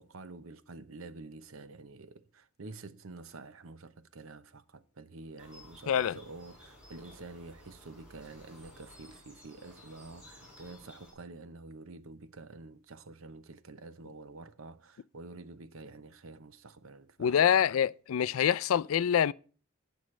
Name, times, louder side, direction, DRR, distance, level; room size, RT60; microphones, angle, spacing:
voice 1, 0.0-17.5, right 3 dB, 70° right, 0.8 m, -48 dB
sound 1, 5.4-11.1, left 1 dB, 5° right, 5.4 m, -55 dB
voice 2, 5.9-6.2 17.2-19.3, left 8 dB, 75° left, 0.4 m, -26 dB
18.5 x 6.3 x 3.2 m
head